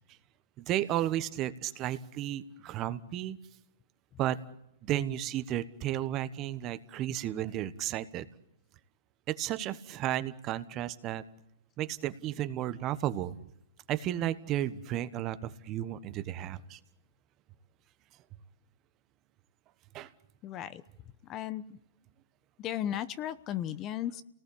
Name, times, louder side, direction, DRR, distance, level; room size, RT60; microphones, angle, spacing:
voice 1, 0.6-3.4 4.2-4.4 4.8-8.3 9.3-11.2 11.8-13.4 13.9-16.8 19.9-20.1, right 12 dB, 30° right, 12 dB, 1.3 m, -33 dB
voice 2, 20.4-20.8 21.3-21.8 22.6-24.2, left 11 dB, 30° left, 14 dB, 1.0 m, -35 dB
29.5 x 19.0 x 8.6 m, 0.82 s
hypercardioid pair, 140°, 0 cm